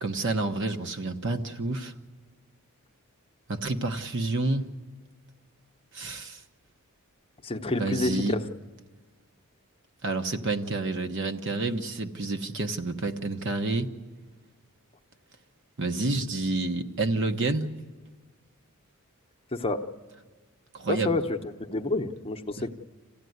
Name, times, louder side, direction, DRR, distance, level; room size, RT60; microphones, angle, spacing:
voice 1, 0.0-1.9 3.5-4.7 5.9-6.4 7.8-8.4 10.0-13.9 15.8-17.7 20.7-21.2, right 2 dB, 60° right, 7 dB, 1.1 m, -29 dB
voice 2, 7.4-8.4 19.5-19.8 20.9-21.4 21.7-22.7, left 2 dB, 25° left, 5 dB, 0.8 m, -28 dB
27.5 x 15.5 x 9.5 m, 1.4 s
head